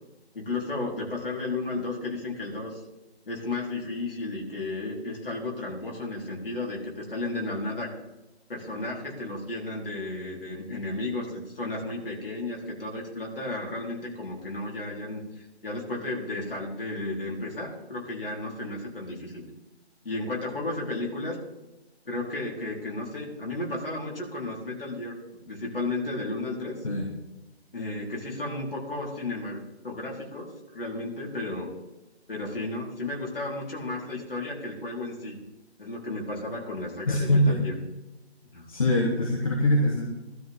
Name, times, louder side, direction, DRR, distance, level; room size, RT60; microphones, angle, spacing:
voice 1, 0.3-2.8 3.3-7.9 8.5-19.5 20.0-21.4 22.0-26.9 27.7-31.7 32.3-35.4 35.8-37.7 38.5-38.7, left 2 dB, 55° left, -3 dB, 4.4 m, -33 dB
voice 2, 37.1-37.6 38.7-40.1, left 1 dB, 30° left, 0 dB, 1.4 m, -23 dB
17.5 x 13.0 x 3.7 m, 0.98 s
figure-of-eight pair, 170°, 33 cm